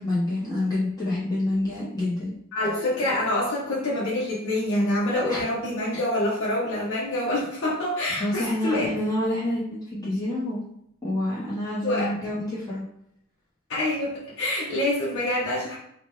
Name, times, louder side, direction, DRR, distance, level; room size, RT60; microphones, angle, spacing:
voice 1, 0.0-2.3 5.3-5.4 8.2-10.6 11.0-12.8, left 1 dB, 15° left, -9 dB, 0.8 m, -27 dB
voice 2, 2.5-8.9 11.8-12.1 13.7-15.8, left 1 dB, 65° left, -7 dB, 0.7 m, -26 dB
2.8 x 2.1 x 3.3 m, 0.73 s
head